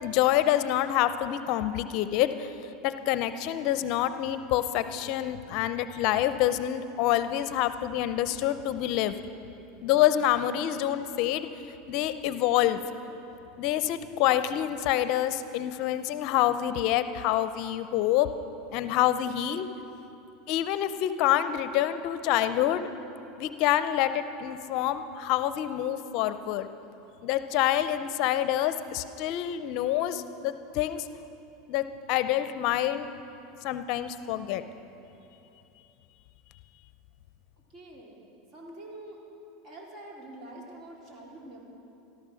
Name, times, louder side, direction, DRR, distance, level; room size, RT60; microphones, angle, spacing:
voice 1, 0.0-2.5 2.8-9.1 9.8-11.5 11.9-12.8 13.6-18.3 18.7-19.7 20.5-22.9 23.4-26.7 27.2-31.1 31.7-33.1 33.6-34.6, left 12 dB, 55° left, 12 dB, 0.6 m, -27 dB
voice 2, 37.7-38.2 38.5-39.2 39.6-41.6, right 1 dB, 40° right, -2 dB, 3.8 m, -45 dB
13.5 x 13.5 x 6.3 m, 2.9 s
supercardioid pair, 110°, 0 cm